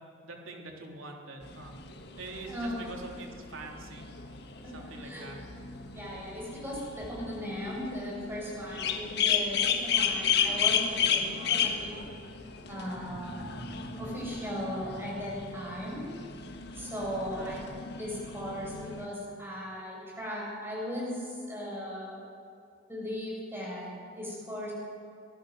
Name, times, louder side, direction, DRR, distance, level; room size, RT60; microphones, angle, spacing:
voice 1, 0.2-1.8 2.2-4.1 4.7-5.4 11.1-11.4 17.3-17.7, right 2 dB, 75° right, 1 dB, 3.6 m, -44 dB
sound 1, 1.4-19.1, left 7 dB, 50° left, 1.6 m, -33 dB
voice 2, 2.5-3.0 4.6-4.7 5.0-5.2 5.9-11.9 12.7-16.1 16.7-22.2 22.9-24.7, equal, 10° right, -4 dB, 6.6 m, -37 dB
24.0 x 19.0 x 6.4 m, 2.5 s
head